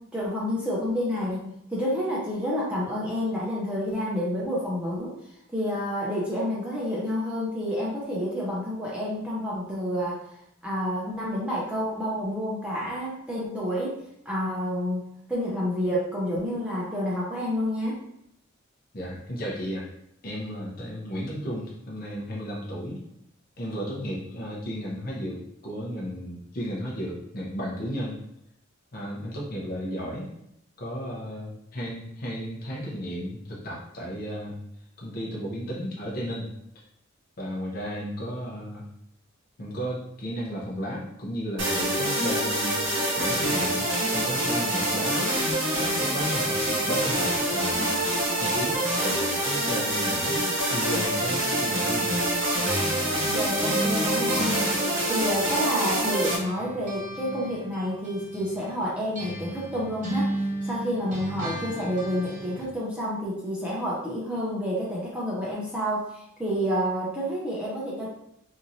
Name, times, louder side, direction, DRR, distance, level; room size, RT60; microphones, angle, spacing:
voice 1, 0.0-5.1 5.5-10.2 10.6-14.0 14.3-15.0 15.3-18.0 53.3-54.7 55.1-60.4 60.6-68.1, equal, 5° right, -6 dB, 0.5 m, -29 dB
voice 2, 18.9-19.9 20.2-23.0 23.6-28.2 28.9-30.3 30.8-34.6 35.0-36.5 37.4-38.8 39.6-42.8 43.2-45.3 45.8-48.0 48.4-52.2, equal, 50° left, -5 dB, 0.7 m, -34 dB
sound 1, 41.6-56.4, right 1 dB, 70° right, 0.9 m, -26 dB
sound 2, 52.6-56.0 56.3-62.7, right 1 dB, 40° right, 0.8 m, -35 dB
3.0 x 2.6 x 2.6 m, 0.76 s
head